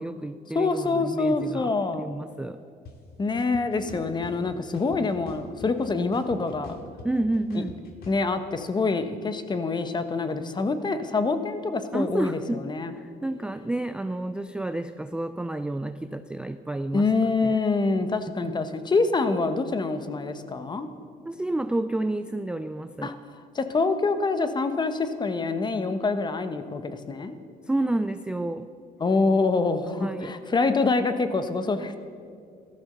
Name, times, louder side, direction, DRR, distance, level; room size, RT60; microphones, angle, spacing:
voice 1, 0.0-2.6 3.9-4.0 7.0-7.8 11.9-12.6 12.9-17.1 17.4-17.6 18.4-18.6 21.3-23.1 27.6-28.7 30.0-30.3, right 2 dB, 5° right, 10 dB, 0.4 m, -30 dB
voice 2, 0.5-2.1 3.2-6.8 7.5-7.6 8.1-12.9 16.9-20.9 23.0-23.1 23.5-27.4 29.0-31.9, left 3 dB, 25° left, 10 dB, 1.1 m, -26 dB
sound 1, 2.8-2.9 3.4-4.3 4.7-5.8 6.1-8.2, left 4 dB, 65° left, 2.2 m, -44 dB
15.0 x 13.5 x 6.7 m, 2.2 s
cardioid pair, 110°, 17 cm